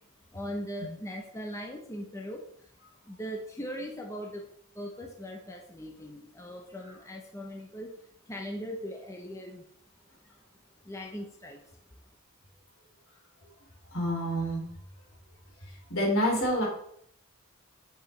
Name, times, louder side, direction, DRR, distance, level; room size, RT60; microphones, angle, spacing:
voice 1, 0.3-2.7 3.0-4.4 4.7-7.9 8.3-9.7 10.8-11.6, equal, 15° left, 1 dB, 0.7 m, -39 dB
voice 2, 13.9-14.7 15.7-16.7, equal, 75° left, -1 dB, 3.0 m, -28 dB
8.4 x 6.0 x 3.2 m, 0.68 s
head